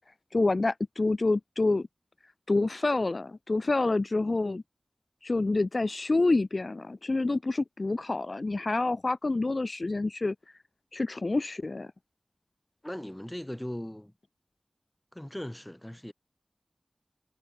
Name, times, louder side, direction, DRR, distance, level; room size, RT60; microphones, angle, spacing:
voice 1, 0.3-1.9 2.5-4.6 5.2-10.3 10.9-11.9, left 2 dB, 60° left, 0.6 m, -27 dB
voice 2, 12.8-14.1 15.1-16.1, left 1 dB, 15° left, 6.2 m, -38 dB
wide cardioid pair, 45°, 0 cm